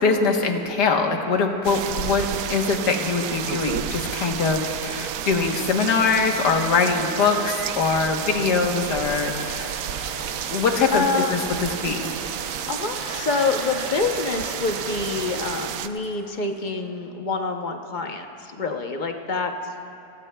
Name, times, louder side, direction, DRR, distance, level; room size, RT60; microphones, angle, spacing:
voice 1, 0.0-9.8 10.5-12.1, left 4 dB, 85° left, 3 dB, 1.7 m, -23 dB
sound 1, 1.6-15.9, right 9 dB, 70° right, 0.9 m, -31 dB
sound 2, 9.1-16.7, left 2 dB, 65° left, 2.8 m, -41 dB
voice 2, 10.9-11.5 12.7-19.5, left 4 dB, 50° left, 4 dB, 0.6 m, -26 dB
29.5 x 17.0 x 2.2 m, 2.8 s
omnidirectional pair, 1.7 m